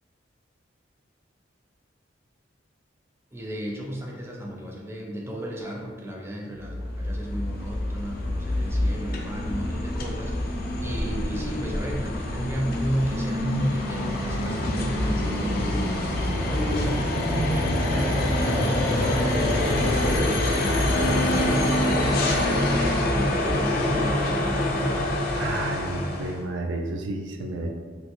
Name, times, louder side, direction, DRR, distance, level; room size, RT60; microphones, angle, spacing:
voice 1, 3.3-25.0, equal, 15° right, -1 dB, 0.3 m, -33 dB
sound 1, 6.6-26.4, left 1 dB, 55° left, 0.4 m, -25 dB
voice 2, 25.4-27.7, right 2 dB, 85° right, 2 dB, 0.4 m, -31 dB
3.1 x 2.6 x 2.8 m, 1.5 s
head